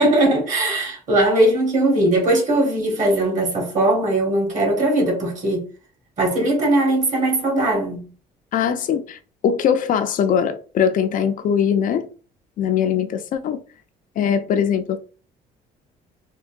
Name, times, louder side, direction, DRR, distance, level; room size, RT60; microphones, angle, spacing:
voice 1, 0.0-5.7 6.2-8.0, right 1 dB, 45° right, 1.4 m, -19 dB
voice 2, 8.5-12.1 12.6-13.6 14.2-15.0, left 8 dB, 50° left, 0.4 m, -21 dB
3.7 x 2.2 x 2.5 m
cardioid pair, 110°, 17 cm